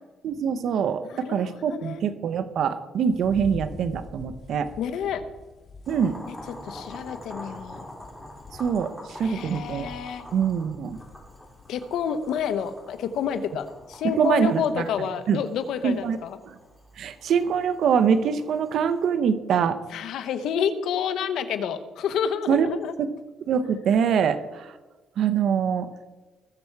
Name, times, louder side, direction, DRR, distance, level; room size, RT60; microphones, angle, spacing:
voice 1, 0.2-4.7 5.9-6.2 8.6-9.9 10.3-11.0 14.0-14.9 15.3-15.4 15.8-16.2 16.5-16.6 17.0-19.8 22.5-23.1 23.5-24.8 25.2-25.9, right 7 dB, 70° right, 10 dB, 0.8 m, -24 dB
voice 2, 1.1-1.4 1.7-2.0 4.8-5.2 6.2-6.3 6.6-7.8 9.2-10.2 11.7-16.4 19.9-22.9, left 7 dB, 80° left, 10 dB, 1.1 m, -29 dB
sound 1, 3.1-14.3, left 3 dB, 50° left, 2.6 m, -46 dB
Boiling, 5.8-19.1, left 1 dB, ahead, 4.4 m, -45 dB
20.0 x 7.0 x 4.7 m, 1.2 s
cardioid pair, 100°, 0 cm